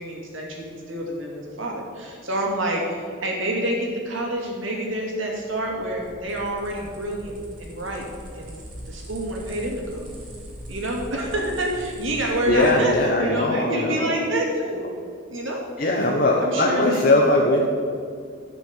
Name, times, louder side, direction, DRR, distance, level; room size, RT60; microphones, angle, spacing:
voice 1, 0.0-8.0 8.3-8.6 8.9-10.1 10.7-14.9 15.3-16.0 16.4-17.0 17.6-17.7, right 1 dB, 80° right, -1 dB, 2.6 m, -28 dB
sound 1, 5.4-13.0, equal, 40° right, 3.2 m, -41 dB
voice 2, 12.5-14.1 15.8-17.7, left 1 dB, 45° left, -1 dB, 1.0 m, -20 dB
12.0 x 6.0 x 7.4 m, 2.2 s
head